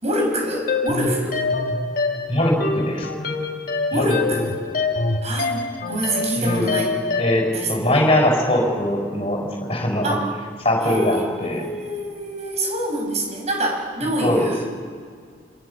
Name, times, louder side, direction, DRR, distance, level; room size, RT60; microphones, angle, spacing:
voice 1, 0.0-1.4 3.9-4.5 5.2-6.9 7.5-7.7 10.0-10.3 10.8-14.7, right 1 dB, 35° right, 2 dB, 6.0 m, -25 dB
sound 1, 0.7-7.5, left 3 dB, 50° left, 2.3 m, -25 dB
voice 2, 2.3-3.1 3.9-4.1 6.4-6.7 7.2-10.2 10.6-11.7 14.2-14.5, left 1 dB, 30° left, 1 dB, 6.2 m, -21 dB
27.0 x 26.0 x 7.2 m, 2.1 s
head